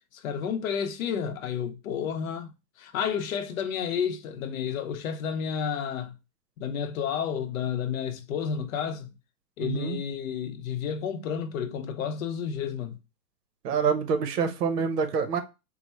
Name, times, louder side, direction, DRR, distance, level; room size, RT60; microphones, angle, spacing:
voice 1, 0.1-6.1 6.6-9.1 9.6-13.0, left 7 dB, 55° left, 0.7 m, -31 dB
voice 2, 9.6-10.0 13.6-15.4, right 6 dB, 70° right, 1.0 m, -26 dB
4.5 x 2.1 x 4.1 m
hypercardioid pair, 150°, 49 cm